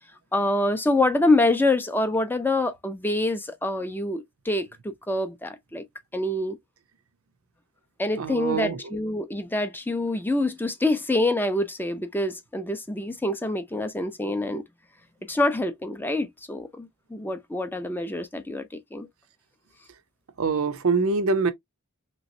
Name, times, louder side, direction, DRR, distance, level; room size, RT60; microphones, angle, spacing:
voice 1, 0.3-5.8 6.1-6.6 8.0-14.6 15.3-19.1, left 2 dB, 10° left, 0.4 m, -26 dB
voice 2, 8.2-8.8 20.4-21.5, right 4 dB, 65° right, 0.6 m, -24 dB
3.2 x 3.0 x 2.6 m
head